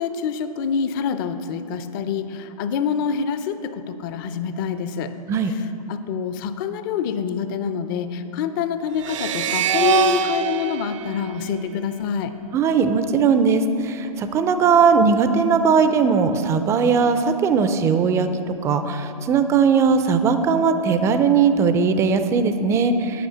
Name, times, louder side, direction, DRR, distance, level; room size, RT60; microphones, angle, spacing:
voice 1, 0.0-5.1 5.4-12.3, left 7 dB, 35° left, 10 dB, 0.5 m, -26 dB
sound 1, 9.0-12.3, right 8 dB, 55° right, 0.6 m, -24 dB
voice 2, 12.5-18.3 18.6-23.3, right 5 dB, 15° right, 9 dB, 0.4 m, -19 dB
10.0 x 5.4 x 7.7 m, 2.9 s
hypercardioid pair, 120°, 20 cm